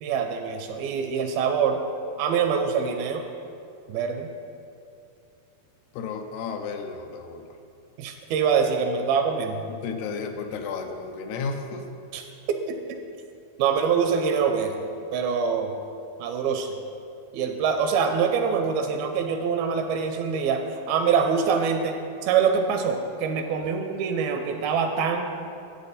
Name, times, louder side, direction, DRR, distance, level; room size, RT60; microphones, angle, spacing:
voice 1, 0.0-1.8 2.2-3.2 3.9-4.3 8.0-9.6 12.1-13.0 13.6-15.8 16.2-16.8 17.3-22.0 22.2-25.2, right 6 dB, 80° right, 5 dB, 2.3 m, -25 dB
voice 2, 5.9-7.4 9.8-11.9, left 5 dB, 85° left, 5 dB, 2.7 m, -33 dB
10.0 x 8.2 x 4.1 m, 2.5 s
omnidirectional pair, 4.5 m